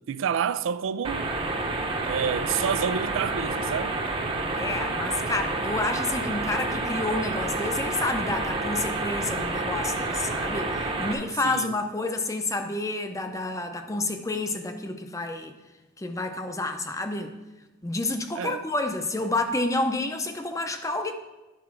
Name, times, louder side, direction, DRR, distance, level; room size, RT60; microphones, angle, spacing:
voice 1, 0.1-1.3 2.1-4.0 11.4-11.7 18.4-18.6, right 7 dB, 80° right, 0.4 m, -28 dB
sound 1, 1.0-11.1, right 2 dB, 25° right, 0.8 m, -29 dB
voice 2, 4.5-15.5 16.0-17.4 17.8-21.1, left 2 dB, 15° left, 0.6 m, -29 dB
10.5 x 4.8 x 5.8 m
head